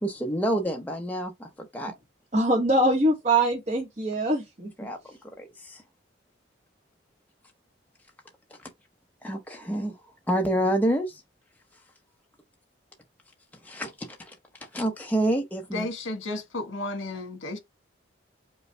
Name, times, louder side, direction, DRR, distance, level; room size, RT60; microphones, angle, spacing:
voice 1, 0.0-1.9 4.8-5.8 8.6-8.7 9.2-9.9 10.3-11.2 13.6-14.3 14.7-15.9, right 1 dB, 10° left, 0.7 m, -28 dB
voice 2, 2.3-4.9, right 1 dB, 40° right, 1.0 m, -23 dB
voice 3, 15.7-17.6, left 2 dB, 85° left, 1.3 m, -33 dB
5.3 x 2.3 x 3.2 m
head